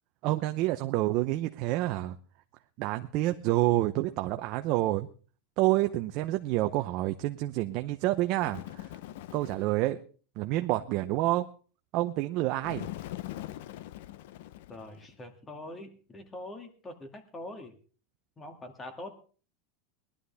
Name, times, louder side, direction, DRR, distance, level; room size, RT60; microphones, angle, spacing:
voice 1, 0.2-2.2 2.8-5.1 5.6-8.8 9.3-10.0 10.4-11.5 11.9-12.9, right 17 dB, 50° right, 7 dB, 0.7 m, -28 dB
Bird, 8.4-9.8 12.6-15.1, left 15 dB, 70° left, 0.6 m, -42 dB
voice 2, 14.7-17.8 18.4-19.1, left 1 dB, 15° left, 6 dB, 2.1 m, -43 dB
19.5 x 11.5 x 3.4 m, 0.38 s
supercardioid pair, 140°, 0 cm